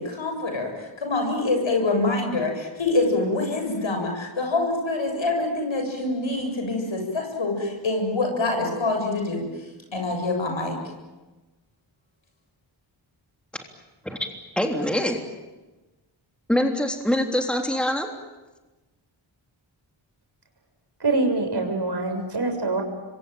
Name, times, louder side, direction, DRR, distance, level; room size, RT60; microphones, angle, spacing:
voice 1, 0.0-9.5 9.9-10.8, left 2 dB, 70° left, 7.6 m, -25 dB
voice 2, 14.5-15.3 16.5-18.1, left 1 dB, ahead, 3.4 m, -24 dB
voice 3, 21.0-22.8, right 3 dB, 55° right, 6.6 m, -24 dB
26.0 x 23.5 x 9.1 m
cardioid pair, 45°, 49 cm